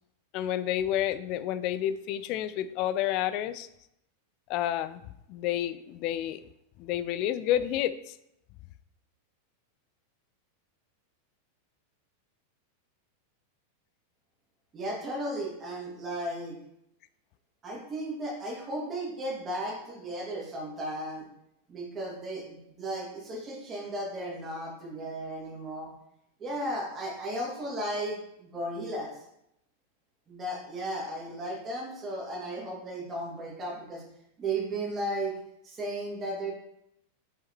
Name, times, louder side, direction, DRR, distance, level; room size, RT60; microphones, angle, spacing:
voice 1, 0.3-3.7 4.5-5.0 5.3-6.4 6.8-8.2, left 11 dB, 40° left, 14 dB, 0.3 m, -30 dB
voice 2, 14.7-16.6 17.6-21.3 21.7-25.9 26.4-29.2 30.3-34.0 34.4-35.4 35.6-36.5, right 1 dB, 25° right, -2 dB, 2.1 m, -35 dB
5.7 x 5.6 x 3.1 m, 0.79 s
figure-of-eight pair, 90°, 0 cm